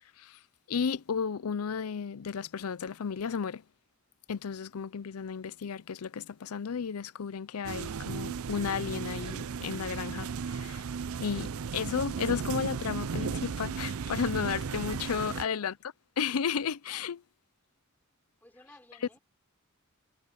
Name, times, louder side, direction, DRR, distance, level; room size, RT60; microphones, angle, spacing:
voice 1, 0.7-3.6 4.3-10.8 11.2-15.7 16.2-17.2, left 6 dB, 85° left, 0.5 m, -33 dB
sound 1, 7.6-15.5, right 6 dB, 75° right, 0.5 m, -35 dB
voice 2, 15.2-15.7 18.4-19.2, left 1 dB, 10° left, 6.0 m, -56 dB
head